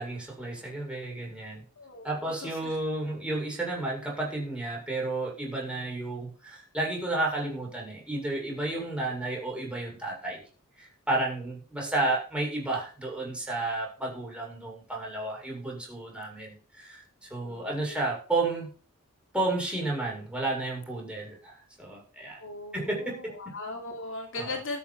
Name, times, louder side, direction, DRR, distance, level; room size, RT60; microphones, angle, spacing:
voice 1, 0.0-1.6 2.0-10.4 10.8-18.7 19.3-22.4 22.7-23.3 24.3-24.5, right 2 dB, 5° right, -3 dB, 6.8 m, -32 dB
voice 2, 1.8-2.8 17.4-18.0 22.4-24.8, left 2 dB, 60° left, 3 dB, 2.7 m, -39 dB
13.0 x 7.5 x 6.1 m, 0.39 s
head